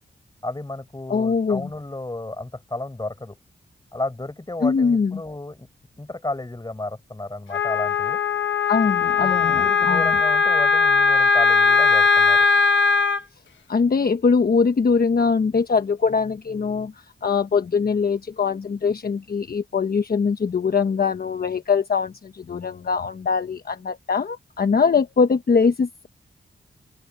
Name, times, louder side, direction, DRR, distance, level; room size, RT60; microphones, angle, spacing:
voice 1, 0.4-3.4 3.9-5.7 6.0-8.2 9.2-12.5, left 2 dB, 20° left, 6.4 m, -32 dB
voice 2, 1.1-1.7 4.6-5.2 8.7-10.2 13.7-16.9 17.2-26.1, left 5 dB, 55° left, 1.1 m, -22 dB
Wind instrument woodwind instrument, 7.5-13.2, left 5 dB, 80° left, 1.2 m, -19 dB
open air
wide cardioid pair, 85°, 19 cm